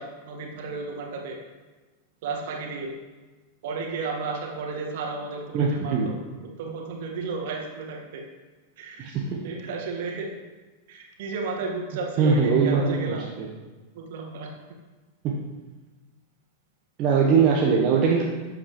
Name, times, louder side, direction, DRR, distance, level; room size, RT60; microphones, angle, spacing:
voice 1, 0.0-1.4 2.2-2.9 3.6-6.2 6.6-8.2 8.8-9.2 9.4-10.3 10.9-13.3 13.9-14.5, right 4 dB, 55° right, 1 dB, 1.9 m, -33 dB
voice 2, 5.5-6.1 9.0-9.4 12.2-13.5 15.2-15.4 17.0-18.2, right 5 dB, 35° right, -1 dB, 1.2 m, -22 dB
13.5 x 8.7 x 3.2 m, 1.3 s
figure-of-eight pair, 90°, 0 cm